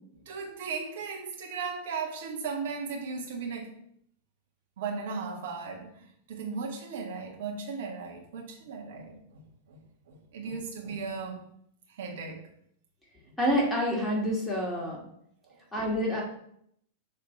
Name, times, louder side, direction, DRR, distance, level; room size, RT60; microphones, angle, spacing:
voice 1, 0.2-3.7 4.8-9.8 10.1-11.4 12.0-12.5 15.4-15.6, right 5 dB, 60° right, 0 dB, 1.5 m, -37 dB
voice 2, 13.4-15.0 15.7-16.2, equal, 10° left, -3 dB, 2.3 m, -27 dB
6.5 x 3.3 x 4.3 m, 0.70 s
figure-of-eight pair, 95°, 0 cm